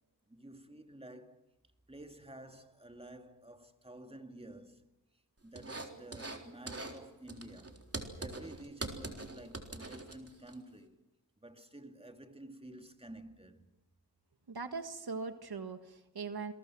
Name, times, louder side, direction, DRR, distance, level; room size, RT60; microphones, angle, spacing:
voice 1, 0.3-1.4 1.9-4.9 5.4-11.1 11.4-13.7, right 1 dB, 15° right, 2.5 m, -51 dB
sound 1, 5.6-6.4 6.7-7.0 7.3-10.5, right 2 dB, 35° right, 3.8 m, -43 dB
voice 2, 14.5-16.5, right 4 dB, 65° right, 1.6 m, -40 dB
28.0 x 22.0 x 6.2 m
cardioid pair, 55°, 40 cm